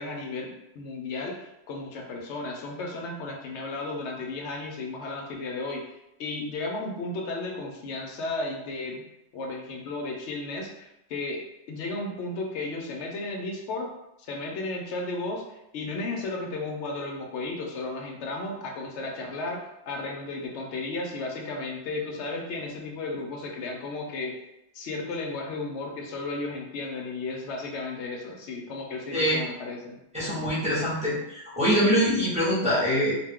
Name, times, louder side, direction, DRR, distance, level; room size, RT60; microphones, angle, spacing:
voice 1, 0.0-5.8 6.2-9.0 9.3-13.9 14.3-24.3 24.7-30.0, left 2 dB, 70° left, 1 dB, 0.8 m, -34 dB
voice 2, 30.1-33.1, equal, 5° right, -9 dB, 0.8 m, -24 dB
2.4 x 2.2 x 3.5 m, 0.88 s
omnidirectional pair, 1.3 m